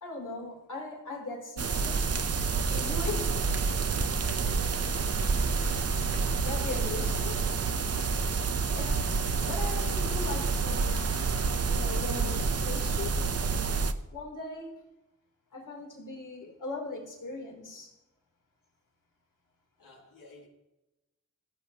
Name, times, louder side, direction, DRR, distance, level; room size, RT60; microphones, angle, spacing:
voice 1, 0.0-2.0 2.7-3.3 6.4-7.5 8.7-9.1 9.4-11.1 11.7-13.2 14.1-14.7 15.5-17.9, left 3 dB, 70° left, 3.2 m, -39 dB
sound 1, 1.6-13.9, right 4 dB, 50° right, 0.6 m, -28 dB
voice 2, 4.2-5.3 19.8-20.5, left 2 dB, 90° left, 2.4 m, -52 dB
16.0 x 7.7 x 2.8 m
wide cardioid pair, 75°, 32 cm